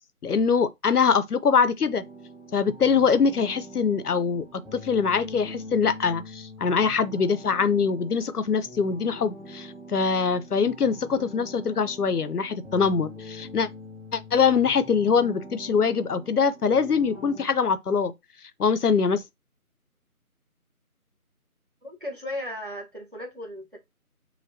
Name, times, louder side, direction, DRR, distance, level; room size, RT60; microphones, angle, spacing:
voice 1, 0.2-2.0 2.5-13.7 14.1-18.1 18.6-19.2, left 6 dB, 80° left, 0.7 m, -23 dB
sound 1, 1.8-17.5, left 1 dB, ahead, 0.5 m, -44 dB
voice 2, 21.8-23.8, left 1 dB, 35° right, 0.9 m, -36 dB
5.8 x 2.2 x 2.7 m
figure-of-eight pair, 180°, 45 cm